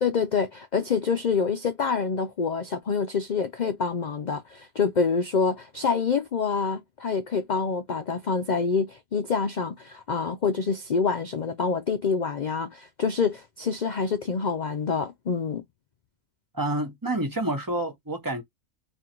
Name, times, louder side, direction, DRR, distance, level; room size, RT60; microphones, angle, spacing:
voice 1, 0.0-15.6, left 5 dB, 85° left, 0.4 m, -26 dB
voice 2, 16.5-18.4, right 1 dB, 20° right, 0.8 m, -28 dB
3.8 x 2.6 x 4.4 m
omnidirectional pair, 1.5 m